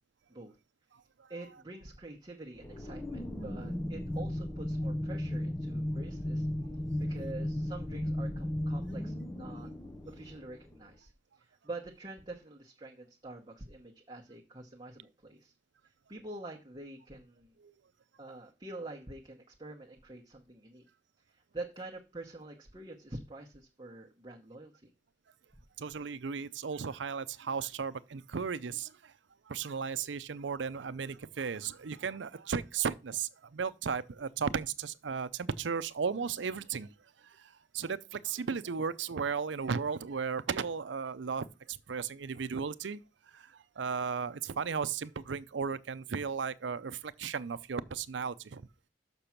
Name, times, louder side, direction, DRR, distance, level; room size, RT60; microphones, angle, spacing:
voice 1, 1.3-6.5 7.0-9.7 10.1-11.1 11.4-15.5 16.1-17.5 18.2-20.9 21.3-24.9, right 2 dB, 25° right, 1.0 m, -46 dB
sound 1, 2.6-10.8, left 1 dB, 20° left, 0.5 m, -35 dB
voice 2, 25.8-29.1 29.5-36.9 37.2-43.0 43.3-48.7, right 6 dB, 85° right, 0.5 m, -35 dB
6.8 x 6.0 x 5.8 m
head